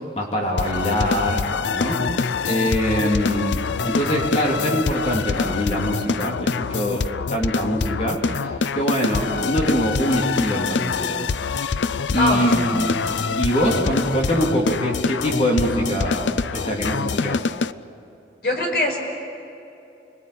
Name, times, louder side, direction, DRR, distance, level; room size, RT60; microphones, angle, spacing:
voice 1, 0.2-1.4 1.7-2.0 2.4-11.2 12.1-13.0 13.4-17.4, equal, 40° left, -1 dB, 3.3 m, -23 dB
sound 1, 0.6-17.7, left 5 dB, 90° left, 0.6 m, -25 dB
voice 2, 12.2-12.7 18.4-19.0, left 1 dB, 60° left, 1 dB, 5.4 m, -22 dB
29.5 x 21.0 x 8.7 m, 2.8 s
head